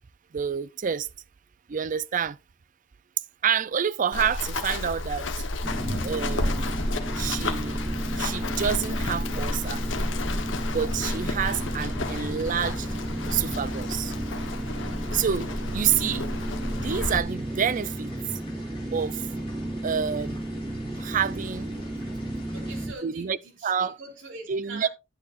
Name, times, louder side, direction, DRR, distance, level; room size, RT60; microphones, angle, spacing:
voice 1, 0.3-1.1 1.7-2.4 3.4-5.3 6.0-6.7 7.2-7.8 8.2-9.8 10.7-12.9 13.2-14.1 15.1-16.3 16.7-18.1 18.9-19.2 19.8-20.4 21.0-21.7 23.0-23.4 23.6-24.0 24.5-24.9, right 8 dB, 45° right, 0.4 m, -28 dB
Run, 4.1-17.2, left 2 dB, 80° left, 1.1 m, -31 dB
sound 1, 5.6-22.9, right 1 dB, 15° right, 0.9 m, -34 dB
sound 2, 5.7-22.9, left 2 dB, 30° left, 3.9 m, -47 dB
voice 2, 22.5-24.9, right 3 dB, 75° right, 3.5 m, -43 dB
11.0 x 8.6 x 2.5 m
head